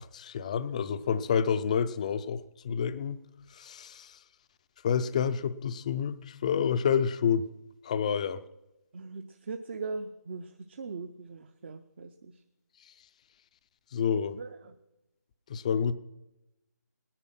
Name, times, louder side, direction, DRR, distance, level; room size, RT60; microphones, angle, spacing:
voice 1, 0.0-3.2 3.5-4.2 4.8-7.5 7.8-8.4 13.9-14.4 15.5-15.9, left 7 dB, 25° left, 0.4 m, -29 dB
voice 2, 8.9-12.4 14.3-14.7, right 4 dB, 40° right, 0.6 m, -40 dB
18.0 x 10.0 x 5.9 m
figure-of-eight pair, 165°, 10 cm